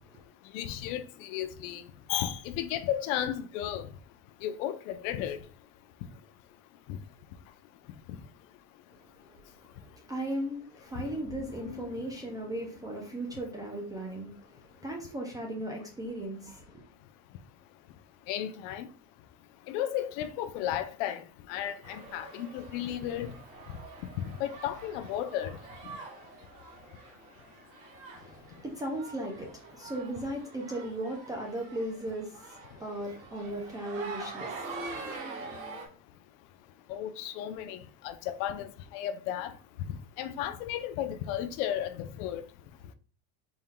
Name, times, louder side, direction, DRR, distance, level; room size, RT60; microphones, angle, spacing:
voice 1, 0.5-1.8 2.1-3.9 4.4-5.4 6.9-7.0 18.3-18.9 19.7-21.2 21.5-23.3 24.4-25.6 36.9-37.8 38.0-39.5 39.9-42.4, left 11 dB, 65° left, 0.6 m, -34 dB
voice 2, 8.9-16.8 28.2-35.2, right 1 dB, 10° right, 0.3 m, -37 dB
sound 1, 10.9-14.6, left 5 dB, 25° left, 1.4 m, -49 dB
sound 2, 21.8-35.9, right 3 dB, 85° right, 1.4 m, -45 dB
4.3 x 2.2 x 3.6 m
cardioid pair, 155°, 40 cm